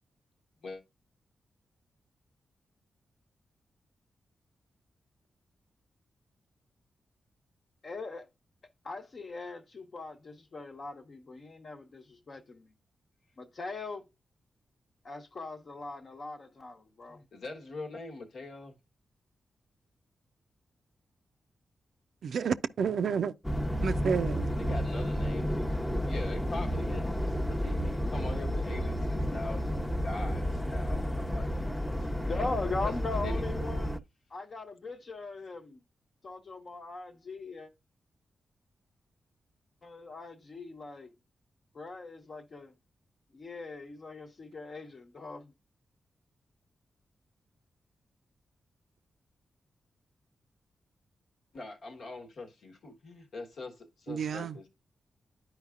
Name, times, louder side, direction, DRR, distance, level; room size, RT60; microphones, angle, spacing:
voice 1, 7.8-8.3 8.8-12.7 13.4-14.1 15.0-17.2 32.0-34.0 34.3-35.8 36.2-37.7 39.8-41.1 41.7-42.7 43.3-45.5, left 3 dB, 55° left, 1.0 m, -40 dB
voice 2, 17.1-18.8 24.5-25.7 26.0-31.5 32.0-32.5 32.8-33.4 51.5-54.7, left 3 dB, 75° left, 1.2 m, -43 dB
voice 3, 22.2-23.3 23.8-24.5 54.1-54.6, right 6 dB, 75° right, 0.4 m, -30 dB
sound 1, 23.4-34.0, equal, 15° left, 0.7 m, -31 dB
10.5 x 4.7 x 2.4 m
supercardioid pair, 45°, 0 cm